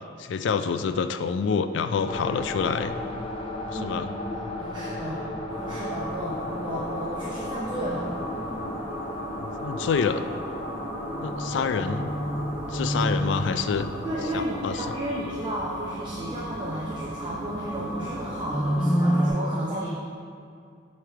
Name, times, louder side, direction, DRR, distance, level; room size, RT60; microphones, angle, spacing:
voice 1, 0.2-2.9 3.7-4.1 9.4-10.2 11.2-12.1 12.7-13.9 14.3-14.9, left 6 dB, 75° left, 11 dB, 0.3 m, -27 dB
sound 1, 2.1-15.1, left 1 dB, 30° left, 0.6 m, -35 dB
voice 2, 4.3-5.2 5.6-8.1 11.5-11.7 14.0-19.9, right 1 dB, 25° right, -5 dB, 0.7 m, -33 dB
sound 2, 5.5-19.3, equal, 5° right, 1.5 m, -32 dB
sound 3, 12.0-18.8, right 4 dB, 65° right, 0.3 m, -45 dB
8.5 x 3.2 x 4.5 m, 2.3 s
head